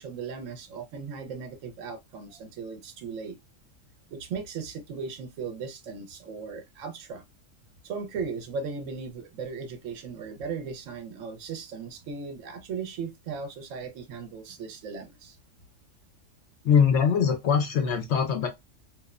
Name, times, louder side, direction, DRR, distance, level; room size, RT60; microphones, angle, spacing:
voice 1, 0.0-3.4 4.1-7.2 7.8-15.4, right 5 dB, 70° right, 0.9 m, -37 dB
voice 2, 16.6-18.5, left 7 dB, 65° left, 0.7 m, -22 dB
2.9 x 2.0 x 2.3 m
omnidirectional pair, 1.5 m